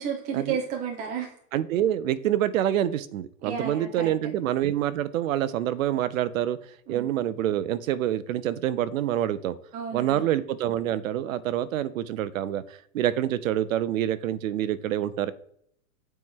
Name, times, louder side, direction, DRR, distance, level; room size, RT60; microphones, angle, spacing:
voice 1, 0.0-1.4 3.4-4.1 6.9-7.1 9.7-10.2, right 7 dB, 20° right, 1 dB, 0.8 m, -32 dB
voice 2, 1.5-6.6 6.9-9.6 9.9-12.6 12.9-15.3, right 11 dB, 65° right, 15 dB, 0.8 m, -26 dB
9.1 x 4.5 x 3.7 m, 0.67 s
supercardioid pair, 165°, 43 cm